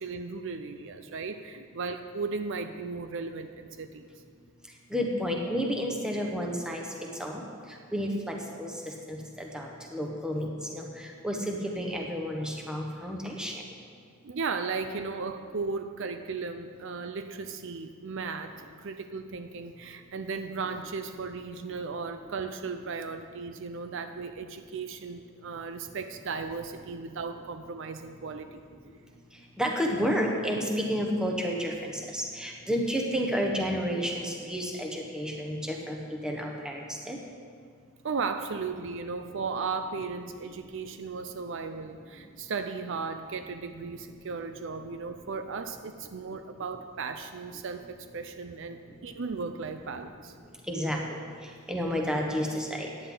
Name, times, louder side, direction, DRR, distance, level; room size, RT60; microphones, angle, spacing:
voice 1, 0.0-4.1 14.2-28.6 38.0-50.3, right 4 dB, 60° right, 8 dB, 0.5 m, -36 dB
voice 2, 4.9-6.8 7.2-7.4 7.9-8.7 9.1-10.5 10.7-13.5 29.6-37.2 50.7-51.2 51.7-52.9, equal, 5° right, 0 dB, 1.2 m, -31 dB
14.5 x 9.8 x 3.9 m, 2.1 s
head